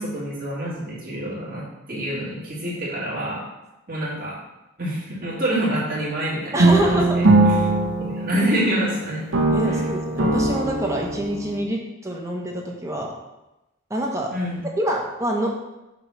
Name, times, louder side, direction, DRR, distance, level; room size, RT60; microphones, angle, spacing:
voice 1, 0.0-3.4 3.9-4.4 4.8-6.5 6.8-7.0 7.5-7.6 8.0-9.2 9.6-9.9 14.3-14.6, right 1 dB, 45° right, -6 dB, 2.1 m, -26 dB
voice 2, 6.5-7.2 9.5-13.1 13.9-14.3 14.8-15.7, right 1 dB, 15° right, -1 dB, 0.9 m, -26 dB
sound 1, 6.6-8.9 9.3-11.6, right 2 dB, 75° right, 1.0 m, -20 dB
7.2 x 3.1 x 5.8 m, 0.96 s
head